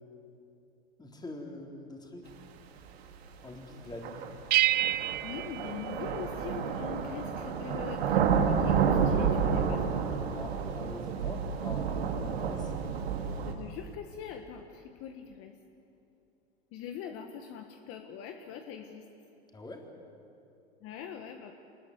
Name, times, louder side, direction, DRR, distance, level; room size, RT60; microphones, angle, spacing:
voice 1, 1.0-2.3 3.4-4.3 10.2-12.7 19.5-19.9, left 2 dB, 15° left, 1 dB, 3.8 m, -44 dB
sound 1, 3.0-3.1 4.0-13.5, right 6 dB, 75° right, 2.5 m, -30 dB
sound 2, 4.5-6.7, right 15 dB, 30° right, 0.5 m, -29 dB
voice 2, 5.2-9.9 13.3-15.5 16.7-19.0 20.8-21.5, left 8 dB, 45° left, 5 dB, 1.6 m, -42 dB
25.5 x 20.0 x 8.1 m, 2.7 s
hypercardioid pair, 100°, 31 cm